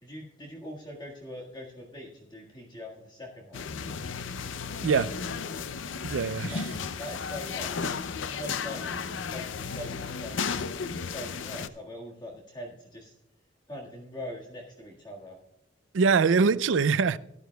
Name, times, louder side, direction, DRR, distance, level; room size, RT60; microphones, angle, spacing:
voice 1, 0.0-3.7 6.5-6.6 7.0-7.9 8.3-9.1 9.3-10.5 11.0-13.1 13.7-15.4 16.4-16.6, left 1 dB, 25° left, 1.7 m, -42 dB
sound 1, 3.5-11.7, left 5 dB, 80° left, 0.5 m, -34 dB
voice 2, 6.0-6.7 15.9-17.2, right 5 dB, 80° right, 0.4 m, -23 dB
17.5 x 12.0 x 2.3 m
head